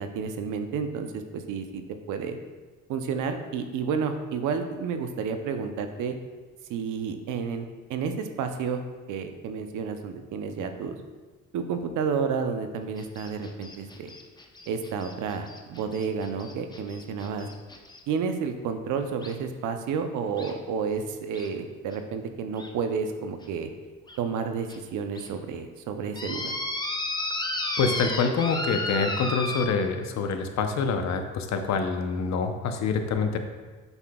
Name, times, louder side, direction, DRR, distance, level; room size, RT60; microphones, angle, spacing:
voice 1, 0.0-1.8 2.1-2.4 2.9-6.2 6.7-8.8 9.1-11.0 11.5-14.1 14.7-17.5 18.1-23.7 24.2-26.5, right 6 dB, 85° right, 7 dB, 0.7 m, -31 dB
sound 1, 13.0-18.0 19.2-19.3 20.4-20.5 21.3-21.5 21.9-22.0 22.6-22.7 23.4-23.5 24.1-24.2 24.7-24.8 25.1-25.3 26.2-29.7, left 2 dB, 15° left, 0.7 m, -33 dB
voice 2, 27.8-33.4, left 5 dB, 65° left, 6 dB, 0.7 m, -26 dB
7.9 x 5.8 x 2.3 m, 1.3 s
cardioid pair, 90°, 30 cm